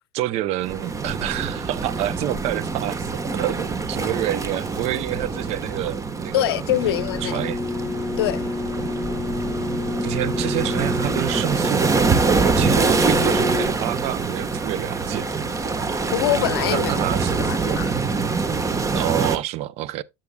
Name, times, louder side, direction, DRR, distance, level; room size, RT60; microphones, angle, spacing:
voice 1, 0.1-6.5 6.9-7.6 10.0-15.5 16.7-17.8 18.6-20.0, right 14 dB, 60° right, 0.5 m, -28 dB
sound 1, 0.6-19.4, right 4 dB, 25° right, 1.2 m, -25 dB
voice 2, 6.3-7.5 8.2-8.5 16.1-17.0 17.4-18.0, left 14 dB, 85° left, 0.5 m, -24 dB
sound 2, 6.8-13.7, left 4 dB, 20° left, 3.5 m, -29 dB
11.5 x 7.4 x 2.2 m
hypercardioid pair, 80°, 12 cm